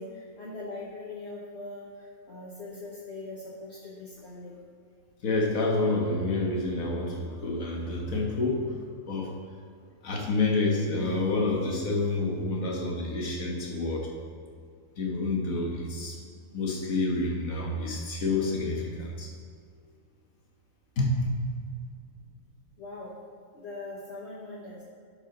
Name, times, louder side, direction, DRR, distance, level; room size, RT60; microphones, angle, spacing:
voice 1, 0.0-4.6 22.8-23.1 23.5-24.8, left 2 dB, 50° left, -7 dB, 1.4 m, -41 dB
voice 2, 5.2-8.7 9.1-9.3 10.0-14.1 15.0-16.2 16.5-19.3 21.0-21.6, left 2 dB, 70° left, -1 dB, 1.7 m, -28 dB
11.5 x 4.9 x 3.8 m, 2.2 s
omnidirectional pair, 1.5 m